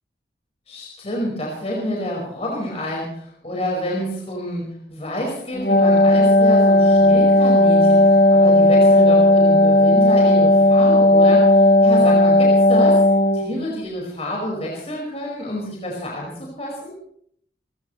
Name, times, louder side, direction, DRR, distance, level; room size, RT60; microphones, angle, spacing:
voice 1, 0.7-13.0 13.3-16.9, left 1 dB, 35° left, -2 dB, 5.1 m, -28 dB
Wind instrument woodwind instrument, 5.5-13.5, left 1 dB, 65° left, 4.3 m, -14 dB
28.0 x 15.0 x 3.2 m, 0.65 s
head